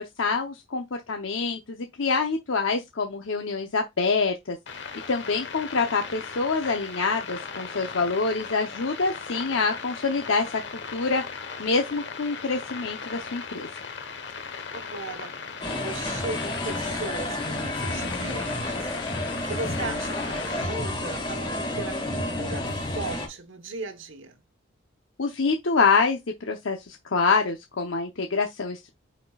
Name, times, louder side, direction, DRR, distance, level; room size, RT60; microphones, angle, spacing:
voice 1, 0.2-4.6 5.1-10.6 10.9-11.2 11.6-13.7 25.2-28.9, left 4 dB, 70° left, 0.8 m, -26 dB
sound 1, 4.7-20.7, left 5 dB, 55° left, 1.1 m, -38 dB
voice 2, 14.4-15.4 15.6-24.4, right 3 dB, 70° right, 1.2 m, -38 dB
sound 2, 15.6-23.3, left 1 dB, 25° left, 1.8 m, -30 dB
9.1 x 4.4 x 2.4 m
head